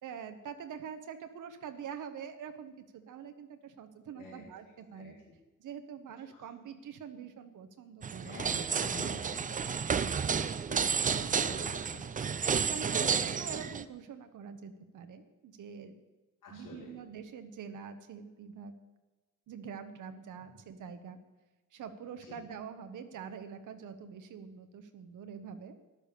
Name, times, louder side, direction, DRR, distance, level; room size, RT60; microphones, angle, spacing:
voice 1, 0.0-5.2 5.6-8.4 9.0-9.1 9.5-9.7 10.7-11.1 12.5-16.0 16.5-18.7 19.5-21.2 21.7-25.7, right 7 dB, 70° right, 8 dB, 1.2 m, -45 dB
voice 2, 4.9-5.4 6.3-6.5 8.2-9.6 10.6-12.0 13.0-13.3 16.4-16.9 22.2-22.4, left 3 dB, 85° left, -6 dB, 4.0 m, -47 dB
sound 1, 8.0-13.8, right 6 dB, 25° right, 0.5 m, -31 dB
14.0 x 11.0 x 6.7 m, 1.2 s
wide cardioid pair, 165°, 32 cm